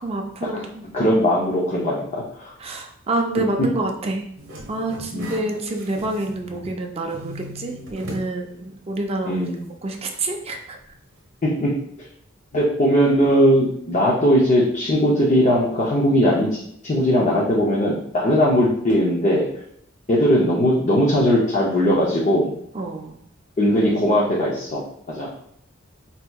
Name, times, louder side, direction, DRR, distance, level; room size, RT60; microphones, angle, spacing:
voice 1, 0.0-0.8 2.6-4.2 4.7-9.4 9.8-10.8 22.7-23.2, right 2 dB, 30° right, 2 dB, 0.4 m, -27 dB
voice 2, 0.9-2.5 5.1-5.3 9.2-9.6 11.4-11.7 12.5-19.5 20.1-22.5 23.6-24.8 25.1-25.3, equal, 35° left, -5 dB, 0.6 m, -19 dB
sound 1, 4.4-6.8 7.1-8.3 8.7-8.8 10.1-10.2, equal, 70° right, 0.9 m, -38 dB
4.4 x 2.7 x 2.3 m, 0.69 s
head